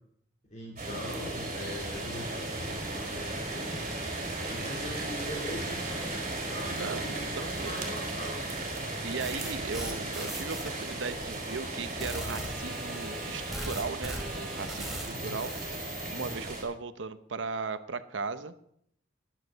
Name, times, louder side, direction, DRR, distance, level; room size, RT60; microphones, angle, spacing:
voice 1, 0.5-6.0 6.4-8.5 15.1-15.4, left 1 dB, 40° left, -4 dB, 3.3 m, -41 dB
sound 1, 0.8-16.6, right 2 dB, 40° right, 4.0 m, -36 dB
voice 2, 6.7-7.8 9.0-15.5 16.1-18.5, right 4 dB, 80° right, 12 dB, 0.8 m, -37 dB
sound 2, 9.2-10.7 11.0-11.2 11.6-11.7 12.0-16.4, right 1 dB, ahead, 2.7 m, -40 dB
14.5 x 11.5 x 4.1 m, 0.69 s
head